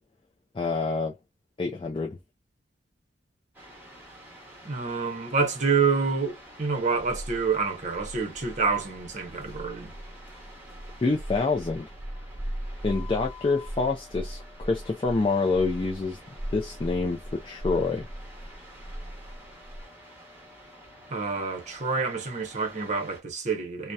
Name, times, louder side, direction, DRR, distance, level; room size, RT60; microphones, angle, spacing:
voice 1, 0.5-1.2 1.6-2.2 11.0-11.9 12.8-16.2 16.5-18.1, left 3 dB, 25° left, 0.3 m, -27 dB
sound 1, 3.5-23.2, equal, 10° right, 0.8 m, -49 dB
voice 2, 4.6-9.9 21.1-23.9, right 4 dB, 40° right, 0.7 m, -27 dB
sound 2, 6.4-19.8, right 1 dB, 60° left, 0.8 m, -39 dB
2.7 x 2.0 x 2.2 m
head